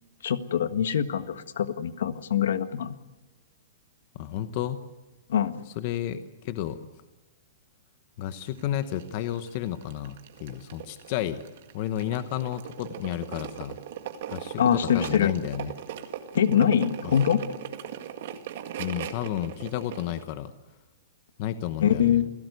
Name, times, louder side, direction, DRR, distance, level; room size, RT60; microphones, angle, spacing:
voice 1, 0.2-2.9 5.3-5.6 14.6-15.3 16.3-17.4 21.8-22.3, left 9 dB, 75° left, 11 dB, 1.6 m, -24 dB
voice 2, 4.1-4.8 5.8-6.8 8.2-11.4 11.7-13.8 14.3-15.7 17.0-17.1 18.8-20.5 21.4-22.2, left 11 dB, 35° left, 11 dB, 1.0 m, -32 dB
sound 1, 8.3-20.2, right 10 dB, 45° right, 1.8 m, -39 dB
28.0 x 17.0 x 8.1 m, 1.1 s
hypercardioid pair, 175°, 0 cm